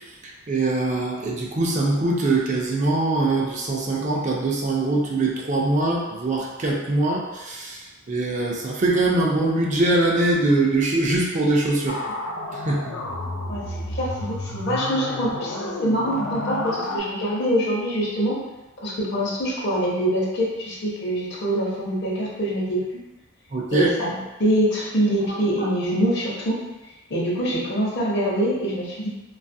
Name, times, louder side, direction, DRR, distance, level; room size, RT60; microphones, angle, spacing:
voice 1, 0.5-12.1 12.5-12.8 23.5-23.9 25.6-25.7, right 2 dB, 35° right, -2 dB, 0.4 m, -22 dB
sound 1, 11.9-17.0, left 1 dB, 70° left, 0.4 m, -30 dB
voice 2, 13.9-18.4 18.8-22.8 23.7-26.6 27.1-29.1, equal, 55° left, -5 dB, 0.8 m, -24 dB
2.6 x 2.3 x 2.6 m, 1.1 s
head